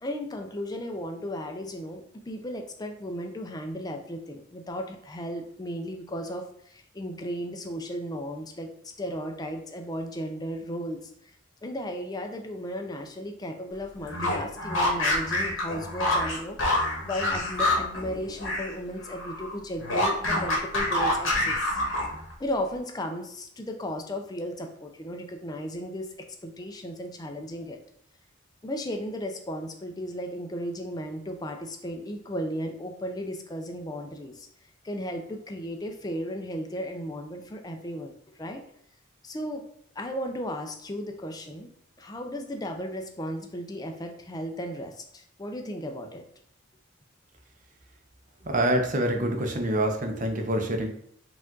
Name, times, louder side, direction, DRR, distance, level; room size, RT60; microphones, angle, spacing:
voice 1, 0.0-8.7 9.0-11.4 11.6-21.8 22.4-26.1 26.4-27.8 28.6-34.5 34.8-38.1 38.4-38.6 39.2-39.6 40.0-41.7 42.0-46.2, equal, 20° left, 4 dB, 0.4 m, -35 dB
sound 1, 14.0-18.7 19.0-22.3, left 1 dB, 75° left, 1.3 m, -27 dB
voice 2, 48.4-50.9, right 1 dB, 40° right, 3 dB, 0.6 m, -26 dB
4.8 x 2.4 x 3.8 m, 0.67 s
head